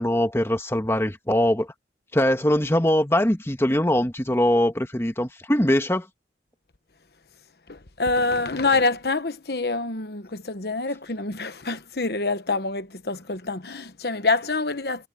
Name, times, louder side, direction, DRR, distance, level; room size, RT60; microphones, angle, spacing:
voice 1, 0.0-1.7 2.1-6.1, left 1 dB, 15° left, 1.5 m, -22 dB
voice 2, 7.7-15.1, left 3 dB, 60° left, 1.2 m, -26 dB
head